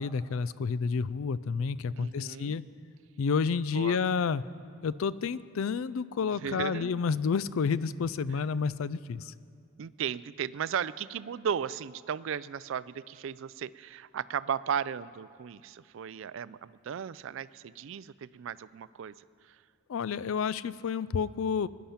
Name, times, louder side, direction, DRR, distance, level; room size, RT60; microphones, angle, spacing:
voice 1, 0.0-2.6 3.2-4.4 4.8-9.3 19.9-21.7, left 5 dB, 65° left, 18 dB, 0.4 m, -30 dB
voice 2, 2.0-2.6 3.7-4.0 6.4-7.0 9.8-19.1, right 8 dB, 60° right, 18 dB, 0.3 m, -35 dB
19.5 x 10.5 x 5.8 m, 2.3 s
head